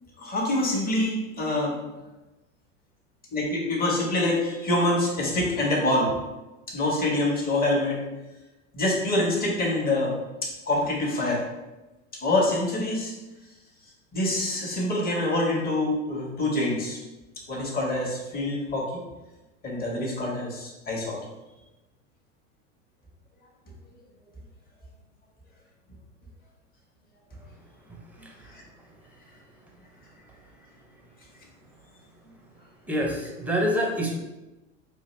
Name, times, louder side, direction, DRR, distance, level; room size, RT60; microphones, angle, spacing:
voice 1, 0.2-1.8 3.3-6.2 6.7-8.0 8.7-10.1 10.4-11.4 12.2-13.1 14.1-17.0 17.5-19.0 19.6-21.2 28.5-28.6, left 1 dB, 25° left, -2 dB, 1.2 m, -25 dB
voice 2, 32.9-34.2, equal, 5° right, 0 dB, 0.7 m, -26 dB
4.7 x 2.5 x 3.2 m, 1.0 s
hypercardioid pair, 100°, 39 cm